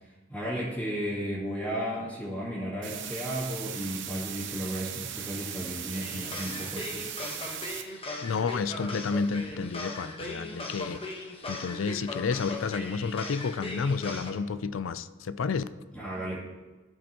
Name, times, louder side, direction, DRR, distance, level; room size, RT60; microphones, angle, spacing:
voice 1, 0.3-7.2 15.9-16.4, equal, 5° left, 2.2 m, -34 dB
sound 1, 2.8-7.8, right 9 dB, 65° right, 0.8 m, -38 dB
sound 2, 5.9-14.3, left 2 dB, 30° left, 1.1 m, -39 dB
voice 2, 8.2-11.0 11.5-15.6, left 5 dB, 75° left, 0.4 m, -30 dB
15.0 x 5.2 x 2.9 m
head